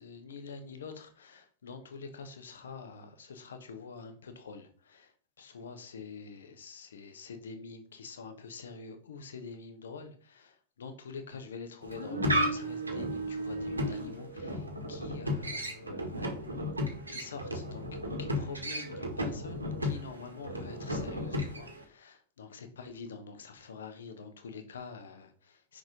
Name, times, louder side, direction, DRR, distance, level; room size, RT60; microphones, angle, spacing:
voice 1, 0.0-5.1 5.4-16.4 17.1-25.8, left 5 dB, 65° left, 1.2 m, -46 dB
sound 1, 11.8-21.8, equal, 80° right, 1.7 m, -34 dB
6.0 x 5.1 x 5.1 m
figure-of-eight pair, 90°, 0 cm